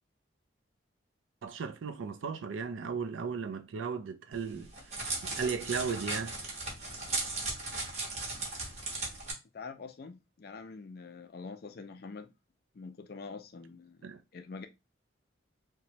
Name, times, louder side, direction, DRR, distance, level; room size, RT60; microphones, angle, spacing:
voice 1, 1.4-4.7 5.3-6.3 14.0-14.2, right 5 dB, 85° right, 0.4 m, -35 dB
Crackle, 4.3-9.3, right 2 dB, 35° right, 0.9 m, -37 dB
voice 2, 9.5-12.3 12.7-14.0 14.3-14.7, left 4 dB, 55° left, 0.4 m, -45 dB
2.9 x 2.2 x 2.6 m
head